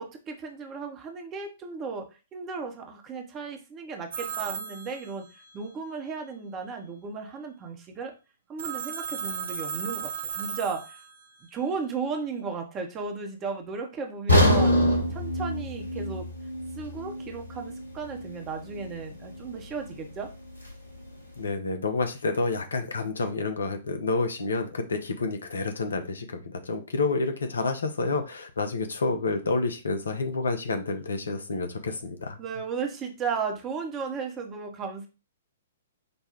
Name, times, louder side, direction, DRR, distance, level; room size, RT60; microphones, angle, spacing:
voice 1, 0.0-5.3 5.5-8.1 8.5-11.0 11.5-14.8 15.1-16.3 16.8-20.3 32.4-35.1, right 5 dB, 20° right, 4 dB, 0.9 m, -35 dB
Telephone, 4.1-5.6 8.6-11.4, right 7 dB, 50° right, 0.6 m, -35 dB
sound 1, 14.3-18.3 18.7-18.9 19.4-19.5, equal, 90° right, 1.1 m, -25 dB
voice 2, 21.4-32.4, left 3 dB, 65° left, 6 dB, 0.7 m, -29 dB
5.4 x 2.3 x 4.3 m, 0.30 s
figure-of-eight pair, 115°, 0 cm